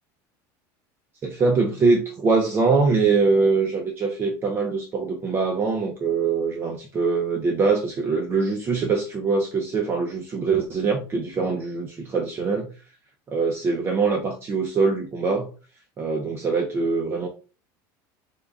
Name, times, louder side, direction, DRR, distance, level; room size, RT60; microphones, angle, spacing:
voice 1, 1.2-12.7 13.3-15.5 16.0-17.3, right 4 dB, 25° right, 2 dB, 0.5 m, -23 dB
3.7 x 2.2 x 3.5 m, 0.34 s
cardioid pair, 150°, 10 cm